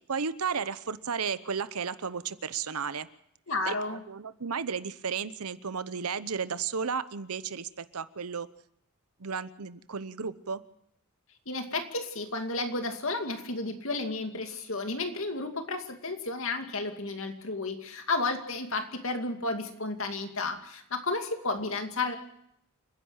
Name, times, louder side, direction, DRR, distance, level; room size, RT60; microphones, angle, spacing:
voice 1, 0.1-3.1 3.7-8.5 9.2-10.6, right 6 dB, 85° right, 15 dB, 0.9 m, -33 dB
voice 2, 3.5-4.0 11.5-22.2, left 3 dB, 65° left, 5 dB, 2.5 m, -32 dB
28.5 x 10.5 x 8.9 m, 0.74 s
head